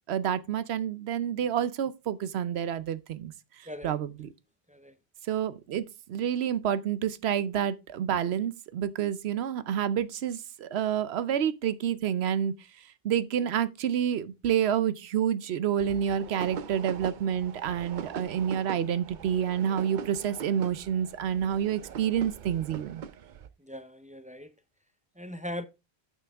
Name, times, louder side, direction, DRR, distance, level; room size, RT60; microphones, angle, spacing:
voice 1, 0.1-3.3 3.6-4.3 5.3-12.5 13.0-23.0, right 9 dB, 80° right, 0.9 m, -29 dB
sound 1, 15.8-23.5, right 7 dB, 55° right, 0.6 m, -42 dB
voice 2, 23.6-24.5 25.2-25.7, left 1 dB, 10° right, 0.4 m, -39 dB
9.3 x 6.1 x 3.4 m
omnidirectional pair, 1.1 m